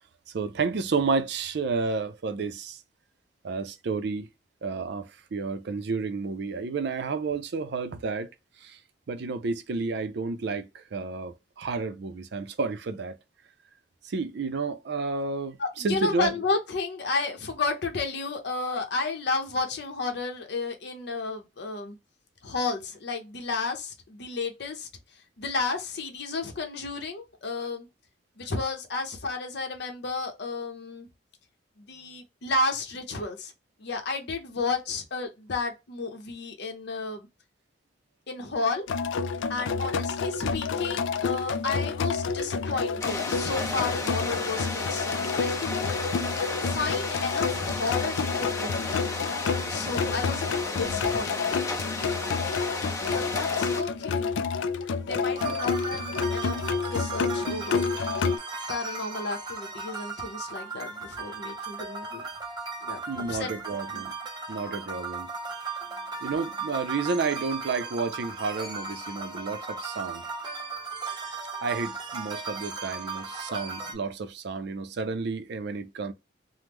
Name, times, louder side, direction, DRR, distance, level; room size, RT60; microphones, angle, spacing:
voice 1, 0.3-2.8 3.4-4.3 4.6-8.3 8.6-8.8 9.1-13.2 14.0-16.3 55.4-55.6 63.1-64.1 64.5-65.3 66.2-70.2 71.6-76.1, right 4 dB, 65° right, 0.4 m, -31 dB
voice 2, 15.6-22.0 22.4-24.9 25.4-27.9 28.4-31.1 31.8-33.5 33.8-37.3 38.3-38.9 39.5-45.9 46.6-49.0 49.7-51.6 53.1-54.3 55.0-57.9 58.7-62.3 62.8-63.0 63.3-63.5 63.9-64.0, left 3 dB, 65° left, 0.7 m, -32 dB
sound 1, 38.9-58.4, left 5 dB, 90° left, 0.3 m, -29 dB
sound 2, 43.0-53.8, left 2 dB, 15° left, 0.6 m, -33 dB
sound 3, 55.4-73.9, right 4 dB, 25° right, 0.6 m, -36 dB
3.0 x 2.0 x 3.4 m
head